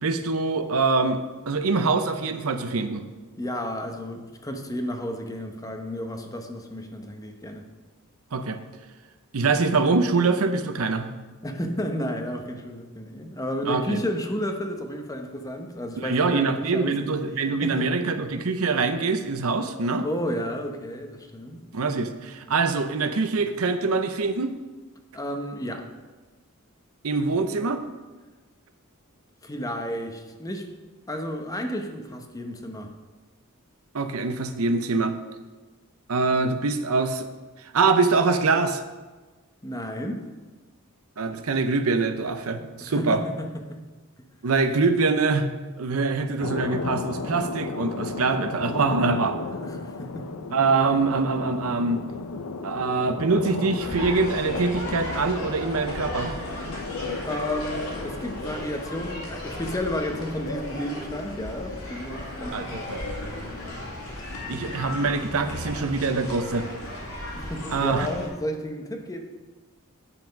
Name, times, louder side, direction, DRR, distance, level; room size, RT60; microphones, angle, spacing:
voice 1, 0.0-1.2 1.5-3.0 8.3-8.6 9.3-11.2 13.7-14.0 16.0-20.1 21.7-24.5 27.0-27.8 33.9-35.1 36.1-37.3 37.7-38.8 41.2-43.2 44.4-45.5 45.8-49.4 50.5-52.0 52.6-56.4 62.5-63.0 64.5-66.7 67.7-68.1, right 4 dB, 75° right, 8 dB, 0.7 m, -24 dB
voice 2, 3.4-7.6 11.4-17.1 17.6-17.9 20.0-21.6 25.1-25.8 29.4-30.7 31.1-32.9 39.6-40.3 42.8-43.8 49.6-50.3 57.3-62.9 64.5-64.8 67.4-69.2, equal, 15° left, 4 dB, 0.9 m, -32 dB
sound 1, 46.4-58.7, left 4 dB, 85° left, 0.6 m, -35 dB
sound 2, 53.8-68.3, left 1 dB, 70° left, 2.3 m, -35 dB
9.4 x 5.9 x 5.2 m, 1.3 s
head